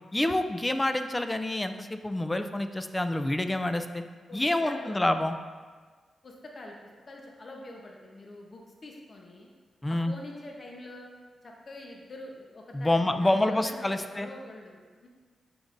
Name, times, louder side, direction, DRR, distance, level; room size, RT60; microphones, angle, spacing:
voice 1, 0.1-4.0 4.3-5.3 9.8-10.1 12.7-14.3, left 1 dB, 15° left, 8 dB, 0.4 m, -27 dB
voice 2, 4.3-5.1 6.2-6.8 7.1-9.5 9.9-11.1 11.4-15.1, left 1 dB, 45° left, 0 dB, 0.9 m, -45 dB
7.1 x 6.0 x 2.6 m, 1.5 s
cardioid pair, 85°, 0 cm